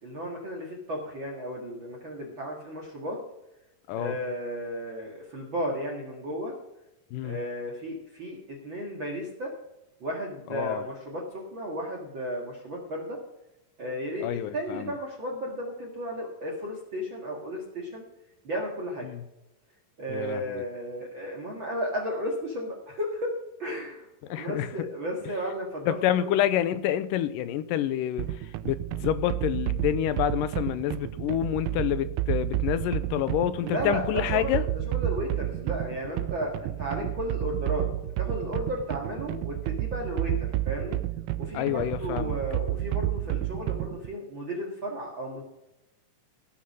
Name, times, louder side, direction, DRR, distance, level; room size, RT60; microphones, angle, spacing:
voice 1, 0.0-3.2 4.0-6.5 7.2-9.5 10.0-13.2 13.8-14.3 14.5-18.0 18.4-19.1 20.0-23.3 23.6-26.3 33.6-37.9 38.2-41.0 41.4-45.4, equal, 40° right, -1 dB, 2.3 m, -34 dB
voice 2, 10.5-10.8 14.2-15.0 19.0-19.2 20.1-20.6 24.2-24.7 25.9-34.7 41.5-42.4, left 11 dB, 85° left, 13 dB, 2.3 m, -28 dB
sound 1, 28.2-44.1, right 16 dB, 80° right, 1.8 m, -31 dB
17.0 x 6.6 x 5.4 m, 0.92 s
omnidirectional pair, 3.9 m